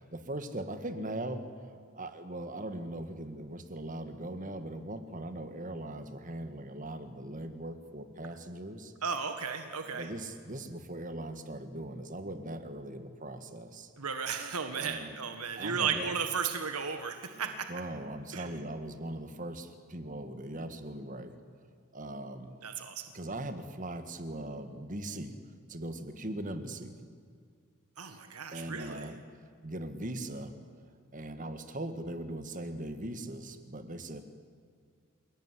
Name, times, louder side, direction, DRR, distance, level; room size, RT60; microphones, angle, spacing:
voice 1, 0.0-8.9 9.9-13.9 14.8-15.2 15.6-16.1 17.3-21.4 21.9-22.6 23.1-25.4 25.7-27.0 28.5-29.2 29.6-30.5 31.1-34.2, right 1 dB, 35° right, 9 dB, 1.8 m, -40 dB
voice 2, 9.0-10.1 14.0-17.7 18.3-18.5 22.6-23.1 28.0-29.1, right 6 dB, 85° right, 7 dB, 1.7 m, -34 dB
29.5 x 18.0 x 9.9 m, 2.2 s
head